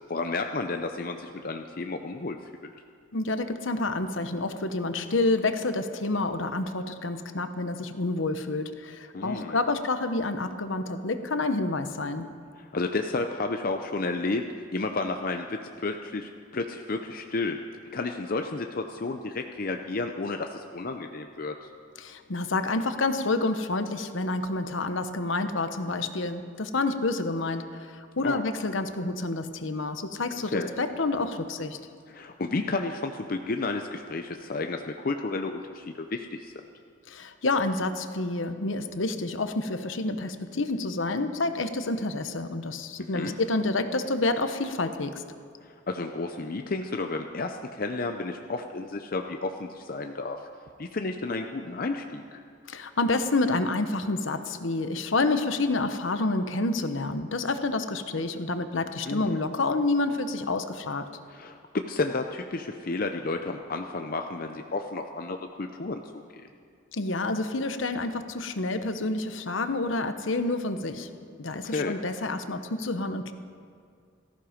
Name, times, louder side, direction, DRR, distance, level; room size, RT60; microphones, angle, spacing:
voice 1, 0.1-2.4 9.1-9.6 12.6-14.4 14.7-17.6 17.9-21.5 28.2-28.4 30.5-30.7 32.1-36.5 43.0-43.4 45.6-50.4 50.8-52.4 59.1-59.4 61.3-66.5 71.6-72.0, left 3 dB, 45° left, 5 dB, 0.6 m, -32 dB
voice 2, 3.1-12.3 22.0-31.8 37.1-45.2 52.7-61.1 66.9-71.1 71.4-73.3, left 2 dB, 70° left, 9 dB, 1.0 m, -28 dB
17.5 x 14.5 x 5.1 m, 2.2 s
head